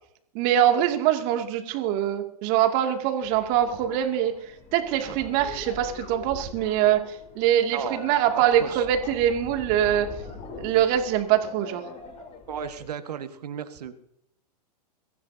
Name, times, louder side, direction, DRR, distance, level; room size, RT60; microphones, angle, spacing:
voice 1, 0.3-4.3 4.7-10.1 10.6-11.8, right 10 dB, 45° right, 5 dB, 2.4 m, -23 dB
sound 1, 3.2-12.9, left 4 dB, 30° left, 3.8 m, -42 dB
voice 2, 8.3-8.9 12.5-13.9, right 8 dB, 70° right, 10 dB, 1.6 m, -35 dB
23.0 x 15.0 x 2.8 m, 0.73 s
figure-of-eight pair, 105°, 21 cm